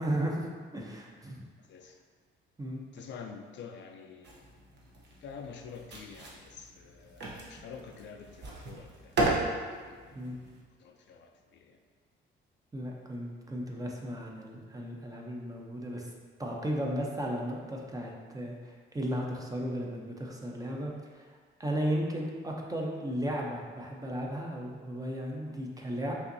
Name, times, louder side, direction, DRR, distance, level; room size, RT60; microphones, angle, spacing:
voice 1, 0.0-1.5 2.6-2.8 10.1-10.4 12.7-16.1 16.4-21.3 21.6-26.1, equal, 20° right, -1 dB, 0.7 m, -35 dB
voice 2, 1.6-2.0 2.9-4.5 5.2-9.2 9.5-10.3 10.8-11.8, left 6 dB, 65° left, 3 dB, 0.4 m, -48 dB
sound 1, 4.2-10.6, right 2 dB, 60° right, 0.9 m, -36 dB
5.6 x 2.6 x 2.7 m, 1.5 s
cardioid pair, 90°, 20 cm